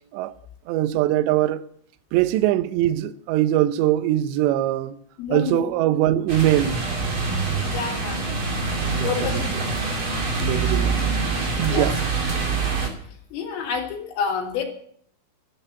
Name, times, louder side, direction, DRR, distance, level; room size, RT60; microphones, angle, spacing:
voice 1, 0.7-1.6 2.1-5.0 5.3-6.8 8.8-9.4 10.4-12.0, right 13 dB, 80° right, 2.7 m, -22 dB
voice 2, 5.2-5.7 7.6-8.2 9.0-9.7 11.5-11.9 13.3-14.6, left 6 dB, 75° left, 5.1 m, -29 dB
sound 1, 6.3-12.9, right 4 dB, 35° right, 2.6 m, -25 dB
13.5 x 12.0 x 8.1 m
omnidirectional pair, 5.8 m